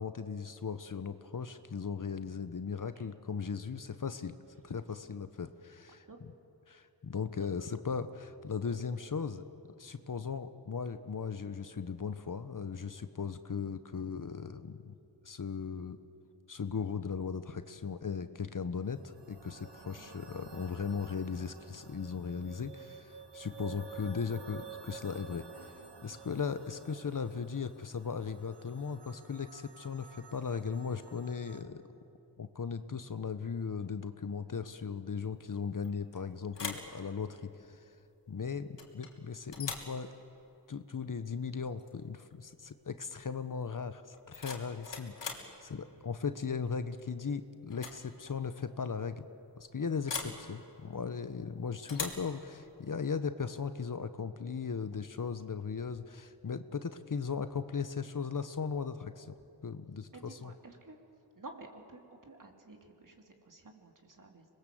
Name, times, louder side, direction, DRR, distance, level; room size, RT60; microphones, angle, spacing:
voice 1, 0.0-4.4 4.6-6.0 6.7-9.4 9.8-14.9 15.2-16.0 16.5-25.7 26.0-31.8 32.4-37.8 38.3-40.1 40.7-44.0 44.3-49.2 49.6-59.3 59.6-60.5, left 6 dB, 45° left, 11 dB, 1.1 m, -37 dB
sound 1, 18.9-31.6, right 6 dB, 70° right, 2.7 m, -51 dB
sound 2, 35.8-36.2 36.5-36.9 38.8-39.1 39.5-39.9 41.8-42.0 42.3-42.7 44.1-45.5 47.0-47.3 47.7-48.0 48.3-48.4 50.1-50.4 51.9-52.3, left 5 dB, 75° left, 3.1 m, -40 dB
voice 2, 60.1-61.0 61.3-64.5, right 2 dB, 45° right, 2 dB, 3.3 m, -52 dB
25.5 x 20.5 x 7.8 m, 2.8 s
cardioid pair, 50°, 43 cm